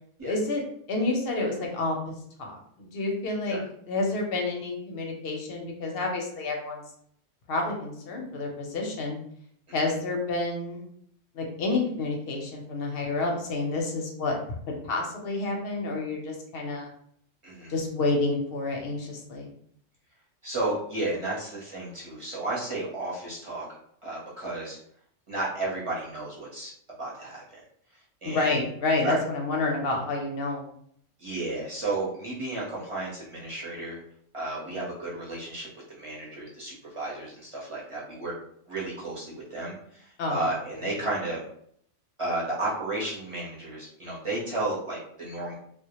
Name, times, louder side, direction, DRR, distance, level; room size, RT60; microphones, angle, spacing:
voice 1, 0.2-2.1 2.4-3.6 3.9-6.8 7.5-9.2 9.7-10.8 11.3-14.3 14.7-16.9 17.7-19.5 28.2-30.6 40.2-40.4, left 2 dB, 60° left, 0 dB, 0.7 m, -29 dB
voice 2, 17.4-17.7 20.4-23.7 24.0-24.8 25.3-26.7 27.0-27.6 28.2-28.6 29.0-29.2 31.2-34.0 34.3-38.3 38.7-41.4 42.2-45.5, right 2 dB, 35° right, -6 dB, 0.6 m, -33 dB
2.1 x 2.1 x 2.8 m, 0.66 s
omnidirectional pair, 1.3 m